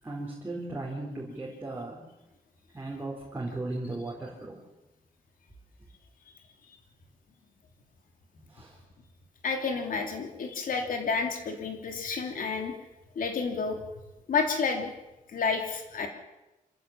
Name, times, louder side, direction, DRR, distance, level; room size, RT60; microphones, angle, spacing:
voice 1, 0.0-2.0 2.7-4.6 8.5-8.8, right 2 dB, 15° right, -4 dB, 4.2 m, -36 dB
voice 2, 9.4-12.7 13.1-13.8 14.3-14.9 15.3-16.1, left 5 dB, 75° left, 4 dB, 3.1 m, -30 dB
26.0 x 15.5 x 7.4 m, 0.98 s
wide cardioid pair, 165°, 14 cm